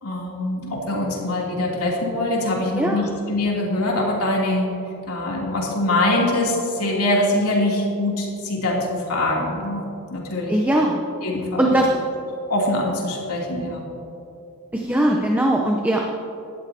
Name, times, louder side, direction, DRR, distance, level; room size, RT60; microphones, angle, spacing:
voice 1, 0.0-4.8 5.1-9.8 10.1-10.6 11.2-11.8 12.5-13.9, left 1 dB, 85° left, -3 dB, 2.9 m, -23 dB
voice 2, 2.8-3.1 10.5-11.0 11.6-11.9 14.7-16.0, right 1 dB, 10° right, 0 dB, 0.7 m, -20 dB
18.5 x 12.5 x 2.8 m, 2.7 s
head